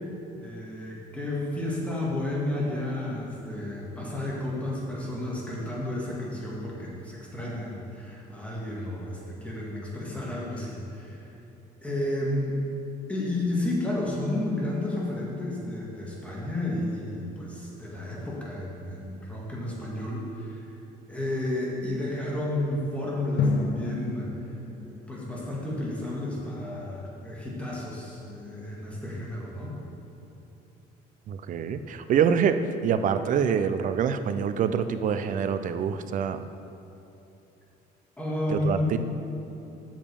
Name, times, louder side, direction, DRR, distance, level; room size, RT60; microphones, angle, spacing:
voice 1, 0.4-11.3 11.8-12.6 13.1-20.8 21.1-24.3 24.9-29.8 38.2-39.0, left 1 dB, 5° left, -5 dB, 1.8 m, -32 dB
Drum, 23.4-26.1, left 4 dB, 80° left, 0.8 m, -31 dB
voice 2, 31.3-36.5 38.5-39.0, right 7 dB, 50° right, 10 dB, 0.5 m, -26 dB
7.2 x 5.1 x 7.0 m, 2.9 s
cardioid pair, 110°, 17 cm